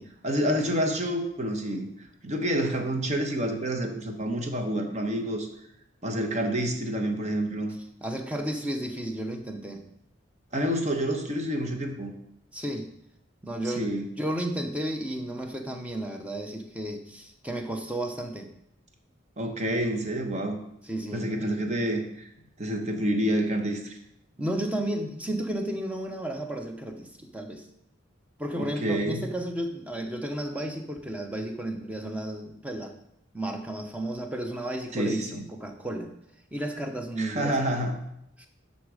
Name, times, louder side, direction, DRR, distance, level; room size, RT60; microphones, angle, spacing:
voice 1, 0.2-1.9 2.2-5.5 6.0-7.7 10.5-12.1 13.6-14.1 19.4-20.6 21.1-22.3 22.6-24.0 28.6-29.2 34.9-35.4 37.2-37.9, right 1 dB, 35° right, 4 dB, 1.1 m, -28 dB
voice 2, 8.0-9.8 12.5-12.9 13.4-18.5 20.8-21.3 24.4-27.7 28.4-32.9 33.3-36.1 36.5-37.6 38.4-38.5, right 1 dB, 5° right, 4 dB, 0.7 m, -33 dB
11.5 x 4.1 x 4.8 m, 0.78 s
head